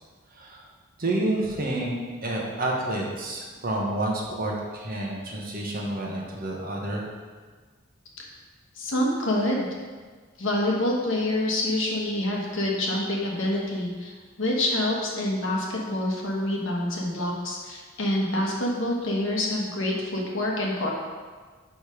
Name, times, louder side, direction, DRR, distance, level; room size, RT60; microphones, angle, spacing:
voice 1, 0.3-0.6 1.0-7.0, right 1 dB, 45° right, -2 dB, 1.1 m, -29 dB
voice 2, 8.7-9.7 10.4-20.9, left 1 dB, 65° left, -2 dB, 1.2 m, -27 dB
5.2 x 4.9 x 5.1 m, 1.5 s
head